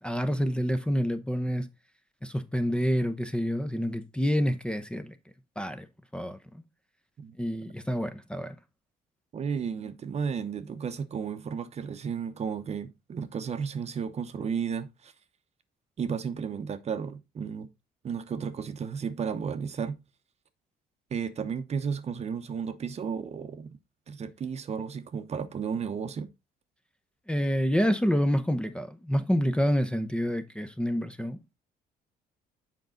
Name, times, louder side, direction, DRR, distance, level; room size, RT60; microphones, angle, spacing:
voice 1, 0.0-1.7 2.2-5.2 5.6-5.9 6.1-6.4 7.4-8.6 27.3-31.4, equal, 5° left, 0.7 m, -28 dB
voice 2, 9.3-15.1 16.0-17.7 18.0-20.0 21.1-23.7 24.1-26.3, right 6 dB, 40° right, 0.9 m, -33 dB
7.2 x 5.3 x 3.8 m
cardioid pair, 110°, 17 cm